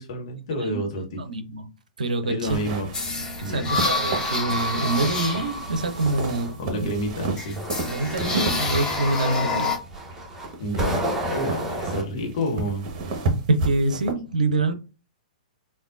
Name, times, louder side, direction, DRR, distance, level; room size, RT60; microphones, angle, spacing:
voice 1, 0.0-1.2 2.3-2.9 3.4-3.7 6.6-7.6 10.6-12.9, equal, 50° left, 1.0 m, -29 dB
voice 2, 1.1-1.7 2.0-2.6 3.4-6.9 7.9-9.8 13.5-14.7, right 2 dB, 70° right, 0.5 m, -25 dB
sound 1, 2.4-14.1, right 3 dB, 40° right, 0.9 m, -33 dB
sound 2, 2.9-6.9 7.4-9.8, left 3 dB, 15° left, 0.8 m, -28 dB
sound 3, 3.9-6.5 7.2-12.0, equal, 10° right, 1.0 m, -33 dB
3.5 x 2.3 x 2.4 m
figure-of-eight pair, 110°, 4 cm